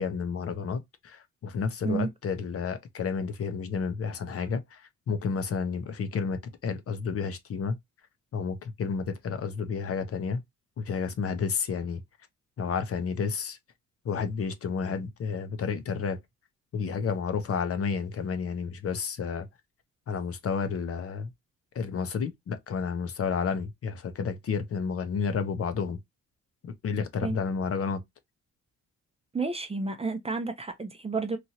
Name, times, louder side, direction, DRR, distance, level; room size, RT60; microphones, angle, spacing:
voice 1, 0.0-7.8 8.3-10.4 10.8-12.0 12.6-13.6 14.0-16.2 16.7-19.5 20.1-21.3 21.7-26.0 26.6-28.0, left 5 dB, 50° left, 0.8 m, -31 dB
voice 2, 29.3-31.4, right 4 dB, 20° right, 0.6 m, -31 dB
3.0 x 2.6 x 2.8 m
cardioid pair, 90°, 30 cm